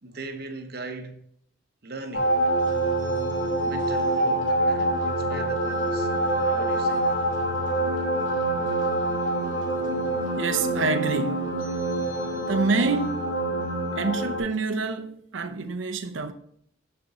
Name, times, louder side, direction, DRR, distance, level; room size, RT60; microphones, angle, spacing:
voice 1, 0.0-1.2 1.8-2.3 3.6-6.1 6.5-7.0, right 2 dB, 55° right, 0.9 m, -39 dB
sound 1, 2.1-14.4, right 1 dB, 80° left, 2.6 m, -26 dB
voice 2, 10.4-11.4 12.5-13.2 14.0-16.3, right 3 dB, 80° right, 0.7 m, -26 dB
7.0 x 6.6 x 3.8 m
head